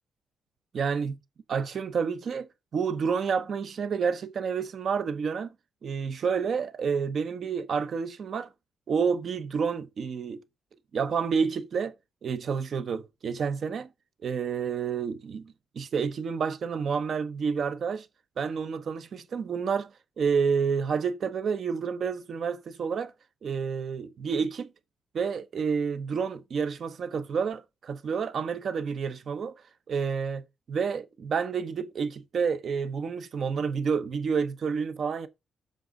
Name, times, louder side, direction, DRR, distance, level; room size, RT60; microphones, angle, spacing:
voice 1, 0.7-1.2 1.5-5.5 5.8-8.5 8.9-10.4 10.9-11.9 12.2-13.9 14.2-18.1 18.4-19.9 20.2-23.1 23.4-24.7 25.1-29.5 29.9-30.4 30.7-35.3, right 6 dB, 45° right, 0.8 m, -29 dB
7.6 x 3.7 x 6.3 m
wide cardioid pair, 175°, 0 cm